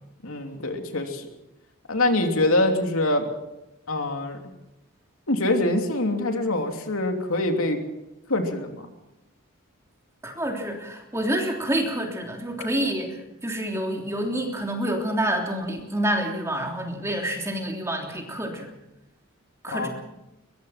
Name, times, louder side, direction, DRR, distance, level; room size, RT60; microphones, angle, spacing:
voice 1, 0.2-1.2 1.9-3.3 3.9-4.4 5.3-7.8 8.3-8.8 19.7-19.9, left 1 dB, 75° left, 4 dB, 3.1 m, -24 dB
voice 2, 10.2-18.7 19.6-19.9, right 1 dB, 15° right, 1 dB, 3.3 m, -28 dB
23.0 x 21.5 x 5.9 m, 0.94 s
head